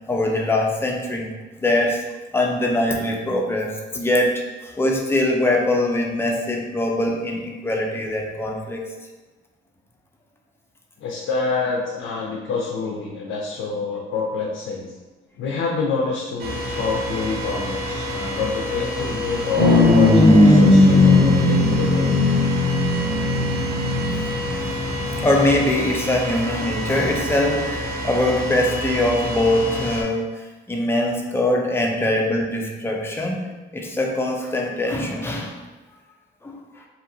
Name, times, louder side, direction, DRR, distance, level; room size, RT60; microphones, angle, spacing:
voice 1, 0.1-1.3 1.6-2.0 2.3-8.9 25.2-33.4 33.7-35.6 36.4-36.5, left 1 dB, 10° left, 0 dB, 0.5 m, -22 dB
voice 2, 11.0-14.9 15.4-22.1, left 4 dB, 80° left, -1 dB, 0.5 m, -27 dB
sound 1, 16.4-30.0, equal, 50° right, 0.5 m, -28 dB
sound 2, 19.6-25.3, left 2 dB, 20° right, 1.3 m, -17 dB
2.7 x 2.5 x 2.6 m, 1.2 s
cardioid pair, 90°, 20 cm